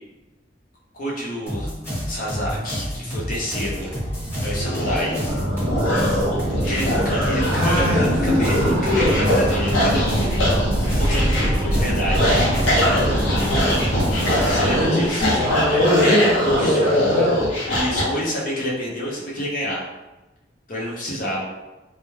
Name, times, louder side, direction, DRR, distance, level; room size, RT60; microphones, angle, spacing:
voice 1, 0.9-1.7 2.1-3.9 4.4-5.2 6.4-10.2 11.0-12.4 14.5-15.3 16.6-16.8 17.7-19.9 20.7-21.4, equal, 45° left, -5 dB, 0.7 m, -28 dB
sound 1, 1.5-14.5, equal, 15° left, 1.0 m, -29 dB
sound 2, 3.7-18.0, equal, 85° left, 0.8 m, -23 dB
sound 3, 5.3-14.9, equal, 30° right, 0.3 m, -24 dB
voice 2, 7.5-9.4 14.7-17.5, left 1 dB, 10° right, -10 dB, 0.7 m, -22 dB
2.2 x 2.0 x 3.1 m, 1.1 s
head